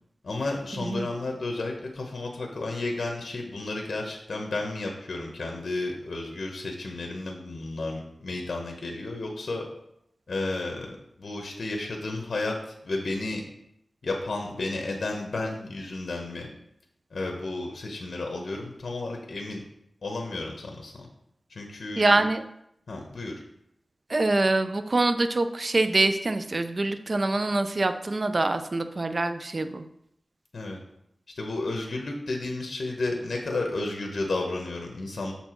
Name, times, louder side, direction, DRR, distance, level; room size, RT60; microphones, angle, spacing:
voice 1, 0.2-9.7 10.3-13.4 14.0-16.5 17.1-19.6 20.0-21.1 21.5-22.2 22.9-23.3 30.5-30.8 31.4-35.3, left 2 dB, 75° left, 1 dB, 1.0 m, -32 dB
voice 2, 22.0-22.4 24.1-29.8, right 2 dB, 50° right, 9 dB, 0.5 m, -25 dB
6.8 x 4.4 x 4.4 m, 0.76 s
wide cardioid pair, 65°, 0 cm